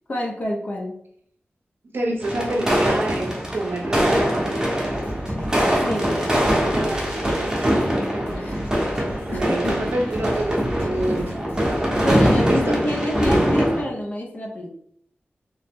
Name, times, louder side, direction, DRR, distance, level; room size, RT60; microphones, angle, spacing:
voice 1, 0.1-1.0 5.6-6.3 8.4-8.7 9.3-9.9 12.0-14.7, left 1 dB, 40° left, -1 dB, 0.6 m, -28 dB
voice 2, 1.9-4.5 6.7-7.7 8.1-8.3 9.3-11.3 12.5-12.8, right 1 dB, 65° right, 0 dB, 0.6 m, -28 dB
sound 1, 2.2-13.8, equal, 15° right, 0.8 m, -22 dB
sound 2, 4.8-12.2, right 1 dB, 80° left, 1.1 m, -37 dB
2.9 x 2.0 x 3.5 m, 0.67 s
wide cardioid pair, 100°, 4 cm